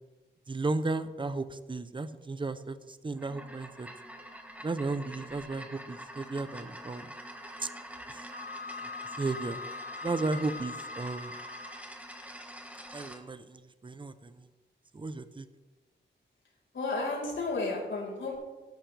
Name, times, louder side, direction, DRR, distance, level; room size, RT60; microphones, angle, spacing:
voice 1, 0.5-3.9 4.6-7.1 7.6-7.7 8.1-8.2 9.2-9.6 10.0-11.3 12.9-14.5 14.9-15.5, right 3 dB, 25° right, 12 dB, 0.7 m, -34 dB
sound 1, 3.1-13.2, right 1 dB, 5° right, 1.3 m, -45 dB
Wind instrument woodwind instrument, 8.3-11.9, left 4 dB, 55° left, 0.7 m, -42 dB
voice 2, 16.7-18.4, left 3 dB, 80° left, -4 dB, 4.7 m, -32 dB
13.5 x 12.0 x 3.4 m, 1.2 s
wide cardioid pair, 105°, 19 cm